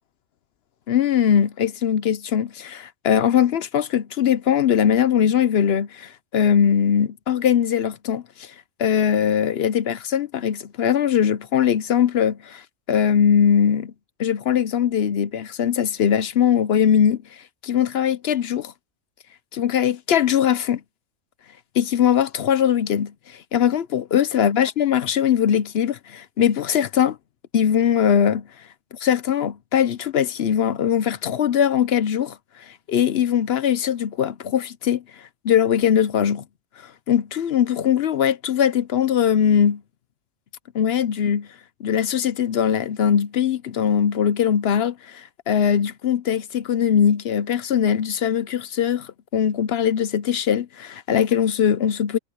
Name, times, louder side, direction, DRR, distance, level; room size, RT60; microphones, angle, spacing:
voice 1, 0.9-8.5 8.8-12.6 12.9-13.9 14.2-17.2 17.6-18.7 19.5-20.8 21.7-27.2 27.5-28.5 28.9-32.4 32.7-35.0 35.4-36.4 37.1-39.8 40.7-41.5 41.8-52.2, left 8 dB, 60° left, 0.8 m, -21 dB
omnidirectional pair, 1.3 m